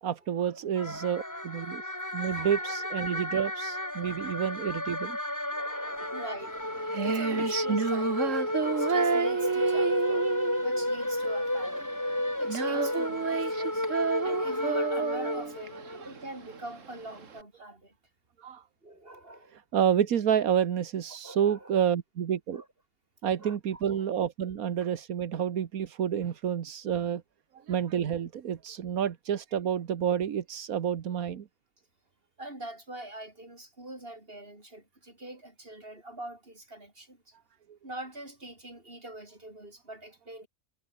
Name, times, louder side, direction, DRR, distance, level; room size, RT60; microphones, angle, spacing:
voice 1, 0.0-1.8 2.1-5.2 7.4-7.5 8.6-8.7 15.9-16.0 18.4-18.6 19.7-22.6 23.2-27.2 27.5-31.5, right 8 dB, 90° right, 1.6 m, -29 dB
sound 1, 0.8-16.0, left 1 dB, 10° left, 2.7 m, -32 dB
voice 2, 2.2-2.8 3.1-3.2 4.1-4.3 5.5-10.4 10.6-12.0 12.4-13.9 14.2-18.0 18.8-19.6 21.2-21.7 22.5-22.7 23.4-24.1 32.4-37.3 37.8-40.5, right 1 dB, 40° right, 6.5 m, -44 dB
Female singing, 6.4-17.4, right 6 dB, 65° right, 1.9 m, -31 dB
omnidirectional pair, 1.5 m